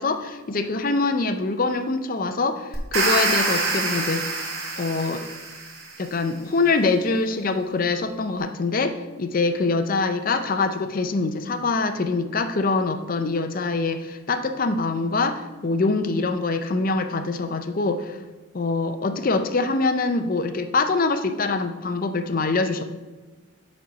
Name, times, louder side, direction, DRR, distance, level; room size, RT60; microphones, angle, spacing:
voice 1, 0.0-4.4 4.8-5.2 6.0-18.2 18.5-22.8, left 3 dB, 40° left, 8 dB, 0.5 m, -24 dB
sound 1, 2.7-5.9, right 3 dB, 75° right, 2.2 m, -25 dB
7.6 x 4.2 x 5.1 m, 1.2 s
head